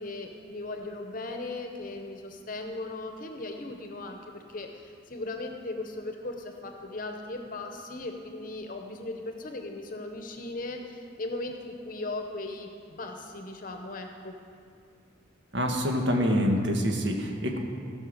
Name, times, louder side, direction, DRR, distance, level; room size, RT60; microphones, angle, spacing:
voice 1, 0.0-14.3, left 2 dB, 45° left, 4 dB, 0.8 m, -38 dB
voice 2, 15.5-17.6, equal, 65° right, 2 dB, 1.4 m, -26 dB
16.0 x 5.7 x 6.5 m, 2.3 s
head